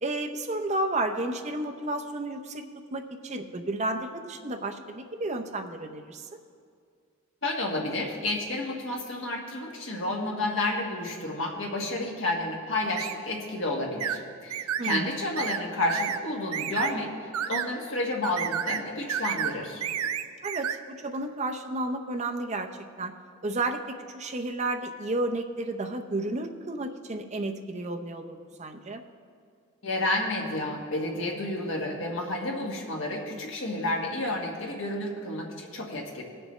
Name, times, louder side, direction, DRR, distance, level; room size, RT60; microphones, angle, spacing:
voice 1, 0.0-2.6 2.9-6.2 14.8-15.1 20.4-20.8 21.0-22.7 23.0-23.1 23.4-23.8 24.1-29.0, right 2 dB, 30° right, 5 dB, 0.6 m, -32 dB
voice 2, 7.4-19.8 29.8-36.2, left 2 dB, 60° left, -1 dB, 1.6 m, -30 dB
sound 1, 13.0-13.2 14.0-14.2 14.5-15.0 15.4-15.6 15.9-16.2 16.5-16.9 17.3-17.7 18.2-18.8 19.1-19.5 19.8-20.8, right 9 dB, 90° right, 0.4 m, -30 dB
18.5 x 6.7 x 3.2 m, 2.2 s
head